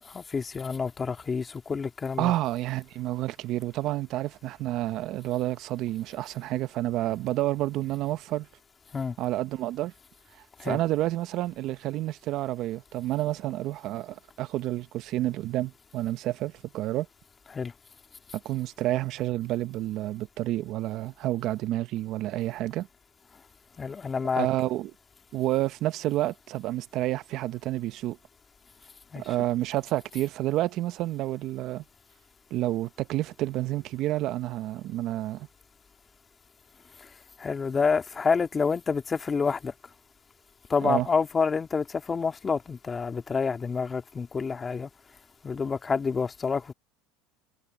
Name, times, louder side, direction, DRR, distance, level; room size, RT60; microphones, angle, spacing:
voice 1, 0.0-2.3 8.9-9.2 10.6-10.8 17.5-17.7 23.8-24.5 29.1-29.3 37.0-37.1 37.4-39.7 40.7-44.9 45.4-46.7, left 5 dB, 20° left, 3.2 m, -28 dB
voice 2, 2.2-8.5 9.2-9.9 10.3-17.1 18.3-22.9 24.3-24.9 25.3-28.2 29.2-31.8 32.5-35.5 40.8-41.1, right 15 dB, 55° right, 0.9 m, -29 dB
supercardioid pair, 110°, 0 cm